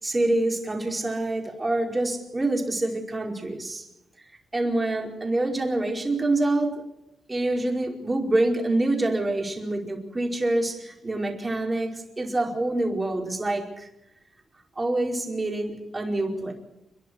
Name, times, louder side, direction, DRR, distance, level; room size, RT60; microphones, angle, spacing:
voice 1, 0.0-3.9 4.5-6.8 7.3-13.9 14.8-16.5, right 2 dB, 20° right, 1 dB, 4.9 m, -26 dB
30.0 x 11.0 x 8.4 m, 0.89 s
cardioid pair, 100°, 0 cm